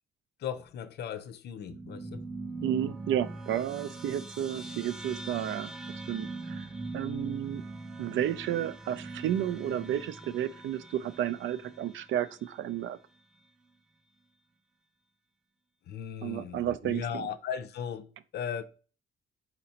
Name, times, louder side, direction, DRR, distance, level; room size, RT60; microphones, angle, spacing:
voice 1, 0.4-2.2 15.9-18.6, left 8 dB, 55° left, 0.5 m, -37 dB
sound 1, 1.7-12.5, right 3 dB, 5° right, 0.5 m, -41 dB
voice 2, 2.6-5.7 6.1-6.7 6.9-7.6 8.0-13.0 16.2-17.3, right 11 dB, 75° right, 0.4 m, -32 dB
4.2 x 3.9 x 2.8 m
cardioid pair, 90°, 20 cm